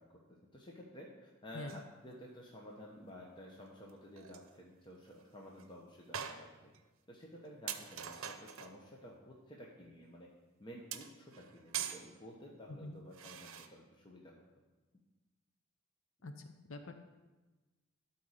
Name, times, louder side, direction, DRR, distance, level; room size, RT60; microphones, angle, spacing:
voice 1, 0.0-6.7 7.1-10.3 10.6-14.4, equal, 20° left, -2 dB, 1.0 m, -52 dB
sound 1, 1.7-1.9 3.9-4.0 4.2-4.5 5.0-5.1 5.6-5.7 6.1-6.8 7.2-7.3 7.7-8.8 10.9-12.1 13.1-13.7, right 9 dB, 80° right, 0.7 m, -43 dB
voice 2, 12.7-13.0 16.2-17.1, left 2 dB, 70° left, 7 dB, 0.7 m, -46 dB
12.0 x 4.3 x 6.5 m, 1.2 s
head